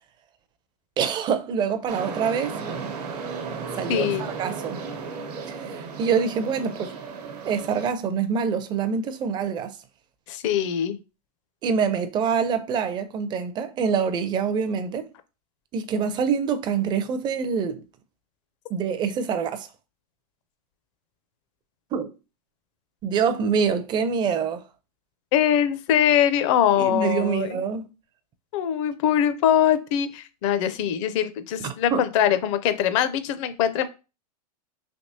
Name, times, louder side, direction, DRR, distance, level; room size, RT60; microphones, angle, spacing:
voice 1, 1.0-2.6 3.7-4.1 4.4-4.8 5.5-6.9 7.5-9.8 11.6-15.1 15.7-17.8 18.7-19.7 21.9-22.1 23.0-24.6 26.8-27.9 31.6-32.0, right 6 dB, 20° right, 0.4 m, -25 dB
sound 1, 1.9-7.9, right 5 dB, 80° right, 1.0 m, -34 dB
voice 2, 3.9-4.3 10.3-11.0 25.3-27.6 28.5-33.9, left 10 dB, 50° left, 0.5 m, -22 dB
3.4 x 2.8 x 2.7 m
hypercardioid pair, 130°, 20 cm